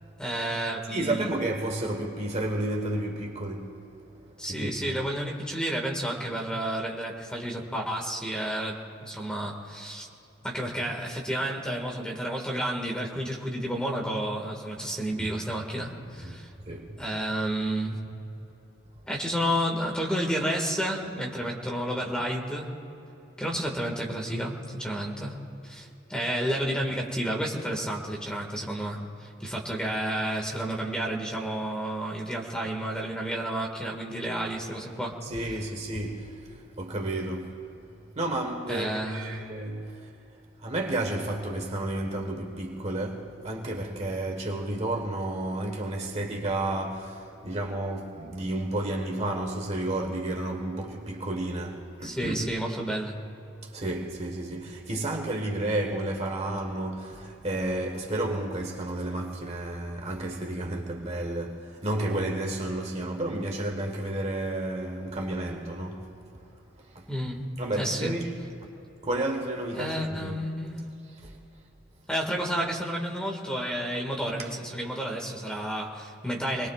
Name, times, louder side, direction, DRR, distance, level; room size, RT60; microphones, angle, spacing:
voice 1, 0.2-1.3 4.4-10.1 10.4-16.5 17.0-18.0 19.1-22.7 23.4-25.4 25.6-35.2 38.7-39.5 52.0-53.2 67.1-67.4 67.8-68.2 69.7-70.9 72.1-76.7, right 1 dB, 5° left, 2.0 m, -31 dB
voice 2, 0.9-4.0 4.4-5.0 15.2-15.3 16.2-17.0 35.2-37.7 38.1-40.1 40.6-52.4 53.6-66.2 66.7-67.1 67.6-68.7 69.0-70.4 71.2-71.4, right 1 dB, 35° right, 1.4 m, -32 dB
27.5 x 21.0 x 2.5 m
head